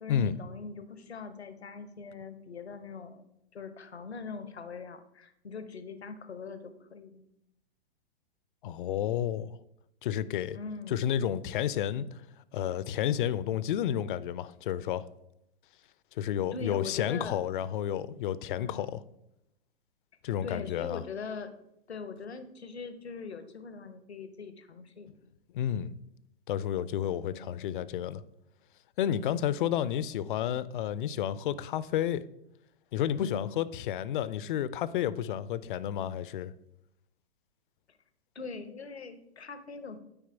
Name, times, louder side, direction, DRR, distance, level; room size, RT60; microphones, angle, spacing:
voice 1, 0.0-3.3 3.5-7.2 10.5-11.1 16.5-17.4 18.5-19.0 20.4-21.5 21.9-25.1 27.3-27.7 29.4-29.9 33.2-33.6 38.3-40.0, left 4 dB, 85° left, 0.9 m, -42 dB
voice 2, 8.6-9.6 10.0-10.6 10.9-12.1 12.5-15.1 16.2-19.0 20.2-21.0 25.5-25.9 26.5-28.2 29.0-32.2 32.9-36.5, left 10 dB, 55° left, 0.5 m, -31 dB
8.9 x 4.7 x 4.5 m
figure-of-eight pair, 105°, 31 cm